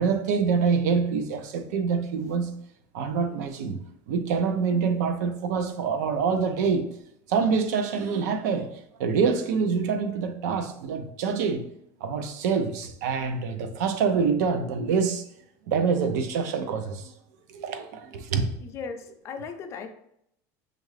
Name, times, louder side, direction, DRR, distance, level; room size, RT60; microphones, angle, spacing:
voice 1, 0.0-2.5 2.9-6.9 7.3-11.7 12.0-15.2 15.7-17.1 17.5-18.5, right 5 dB, 90° right, 0.6 m, -26 dB
voice 2, 18.7-19.9, left 5 dB, 35° left, 0.5 m, -36 dB
6.4 x 2.5 x 3.2 m
cardioid pair, 155°, 9 cm